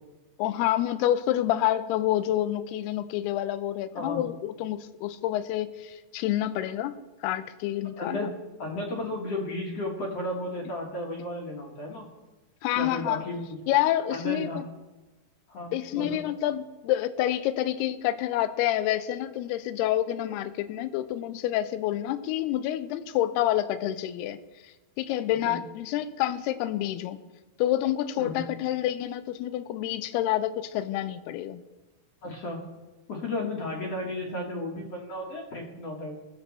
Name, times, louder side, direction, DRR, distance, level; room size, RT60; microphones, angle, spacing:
voice 1, 0.4-8.3 12.6-13.2 13.7-14.6 15.7-24.4 25.0-27.2 27.6-31.6, left 13 dB, 80° left, 13 dB, 2.6 m, -28 dB
voice 2, 8.0-8.3 8.6-12.1 12.8-13.4 14.1-14.6 15.5-16.2 25.4-25.6 28.2-28.4 32.2-32.6 33.1-36.2, left 1 dB, 50° left, -1 dB, 2.0 m, -34 dB
21.0 x 7.6 x 4.1 m, 1.1 s
omnidirectional pair, 4.6 m